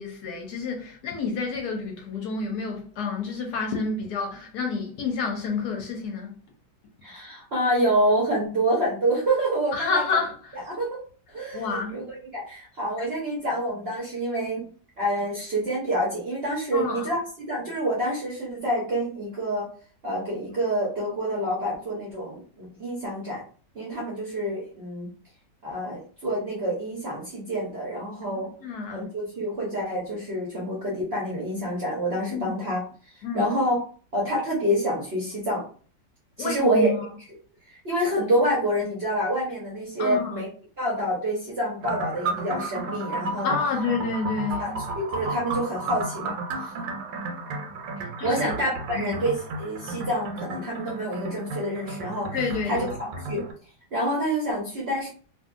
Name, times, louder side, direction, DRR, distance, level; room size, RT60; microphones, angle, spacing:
voice 1, 0.0-6.3 9.7-10.7 11.5-12.1 16.7-17.1 28.6-29.1 32.3-32.5 33.2-33.5 36.4-37.0 40.0-40.4 43.4-44.8 48.2-48.4 48.9-49.2 52.3-52.9, left 4 dB, 70° left, 1.0 m, -29 dB
voice 2, 7.0-10.0 10.7-14.6 15.0-19.7 20.0-23.4 23.7-25.1 25.6-28.5 28.9-33.8 34.1-35.6 36.4-36.9 37.6-40.5 40.8-43.5 44.6-46.7 48.2-52.3 52.6-53.5 53.9-55.1, right 1 dB, 55° right, 0.7 m, -27 dB
sound 1, 41.8-53.5, right 3 dB, 85° right, 1.3 m, -33 dB
2.6 x 2.6 x 2.4 m
omnidirectional pair, 2.0 m